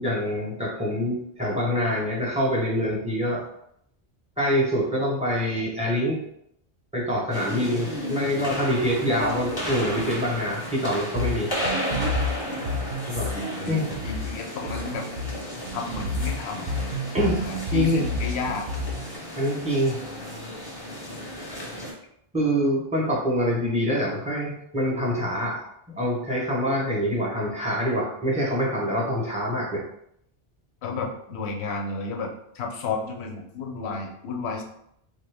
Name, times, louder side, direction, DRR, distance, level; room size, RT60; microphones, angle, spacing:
voice 1, 0.0-3.4 4.4-6.2 6.9-11.5 13.1-13.3 13.7-13.9 17.1-17.4 17.7-18.0 19.4-20.0 22.3-29.8, equal, 5° right, -4 dB, 0.7 m, -25 dB
sound 1, 7.3-21.9, equal, 25° left, 0.7 m, -33 dB
sound 2, 11.2-19.2, left 2 dB, 60° right, 0.6 m, -30 dB
voice 2, 13.3-15.1 15.7-16.8 17.4-18.7 30.8-34.6, left 4 dB, 90° left, 2 dB, 0.9 m, -32 dB
3.1 x 2.1 x 3.3 m, 0.74 s
omnidirectional pair, 1.1 m